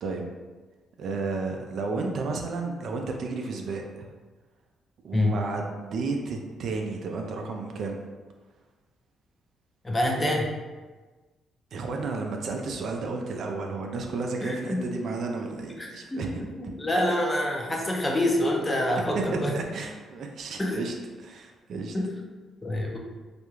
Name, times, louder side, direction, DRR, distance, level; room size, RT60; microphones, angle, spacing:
voice 1, 1.0-4.1 5.0-8.0 11.7-16.3 19.2-22.0, right 3 dB, 65° right, 2 dB, 0.3 m, -32 dB
voice 2, 9.8-10.5 14.4-14.8 15.8-16.2 16.6-19.5 20.6-20.8 21.9-22.1 22.6-23.0, left 1 dB, 20° left, 0 dB, 0.5 m, -26 dB
2.4 x 2.2 x 3.0 m, 1.3 s
cardioid pair, 90°, 0 cm